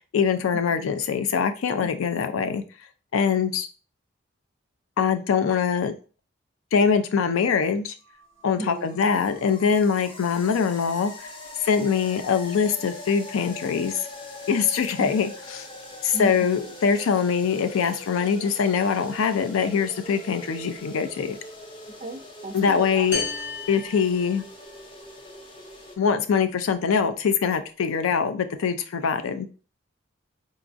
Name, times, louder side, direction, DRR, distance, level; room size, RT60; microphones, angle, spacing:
voice 1, 0.1-2.6 3.1-3.7 5.0-5.9 6.7-7.9 8.4-11.3 11.6-14.0 14.5-15.7 16.0-21.4 22.5-23.2 23.7-24.4 26.0-29.5, left 6 dB, 80° left, 9 dB, 0.4 m, -23 dB
sound 1, 8.0-26.0, left 1 dB, 25° left, 0.5 m, -42 dB
voice 2, 8.5-9.0 15.0-15.2 16.1-16.4 22.0-23.1, right 2 dB, 35° right, 7 dB, 0.3 m, -35 dB
sound 2, 23.1-24.8, left 4 dB, 55° left, 0.9 m, -33 dB
3.9 x 2.4 x 2.5 m, 0.36 s
head